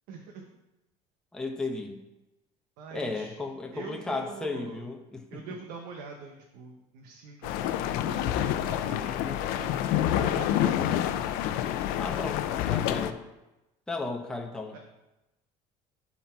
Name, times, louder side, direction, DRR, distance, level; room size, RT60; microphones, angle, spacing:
voice 1, 0.1-0.5 2.8-3.4 3.7-4.9 5.3-11.2 14.7-14.8, right 4 dB, 80° right, 2 dB, 1.1 m, -43 dB
voice 2, 1.3-2.0 2.9-5.4 8.9-9.2 12.0-13.2 13.9-14.8, left 3 dB, 5° left, 1 dB, 0.8 m, -35 dB
sound 1, 7.4-13.1, left 11 dB, 80° left, 0.6 m, -28 dB
11.5 x 4.3 x 4.6 m, 0.99 s
cardioid pair, 155°, 15 cm